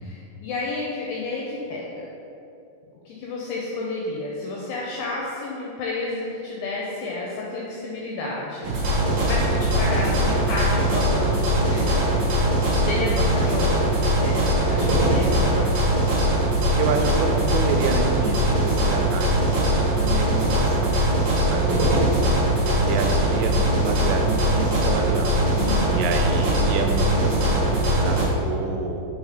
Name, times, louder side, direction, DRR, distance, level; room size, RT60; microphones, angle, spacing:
voice 1, 0.0-1.9 3.1-8.7 9.0-12.2 12.8-14.4 14.7-15.9 19.9-20.2 21.5-21.7 25.6-26.1, left 2 dB, 85° left, -3 dB, 2.4 m, -31 dB
sound 1, 8.6-28.2, right 1 dB, 60° right, 2.5 m, -21 dB
voice 2, 16.8-21.0 21.4-22.0 22.7-25.4 26.0-29.1, right 4 dB, 90° right, 5 dB, 3.2 m, -28 dB
6.9 x 3.9 x 4.9 m, 2.7 s
omnidirectional pair, 5.6 m